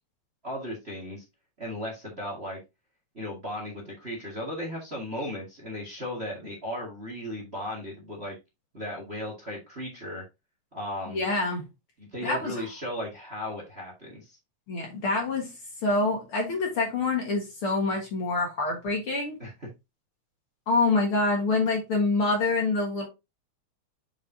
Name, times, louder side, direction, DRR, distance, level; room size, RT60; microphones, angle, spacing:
voice 1, 0.4-1.2 1.6-2.6 3.1-8.3 8.7-10.2 10.7-11.2 12.0-14.4 19.4-19.7, left 1 dB, 25° right, 1.6 m, -36 dB
voice 2, 11.1-11.7 12.2-12.5 14.7-15.5 15.8-19.4 20.7-23.1, left 3 dB, 50° left, 2.1 m, -26 dB
7.5 x 5.0 x 2.7 m
omnidirectional pair, 3.5 m